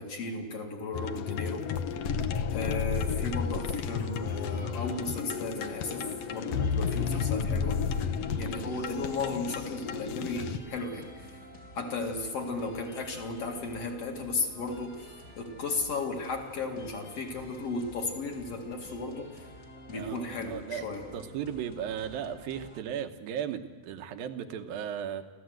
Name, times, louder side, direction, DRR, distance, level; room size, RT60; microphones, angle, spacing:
voice 1, 0.0-1.7 2.5-7.8 8.4-11.4 11.7-19.5 19.9-21.1, left 3 dB, 50° left, 2 dB, 2.8 m, -35 dB
sound 1, 0.9-10.6, left 6 dB, 80° left, 1.4 m, -32 dB
sound 2, 3.7-22.8, left 1 dB, 30° left, 1.4 m, -50 dB
voice 2, 19.9-20.9 21.1-25.3, right 9 dB, 80° right, 8 dB, 2.8 m, -36 dB
26.0 x 15.5 x 7.9 m, 1.4 s
omnidirectional pair, 4.1 m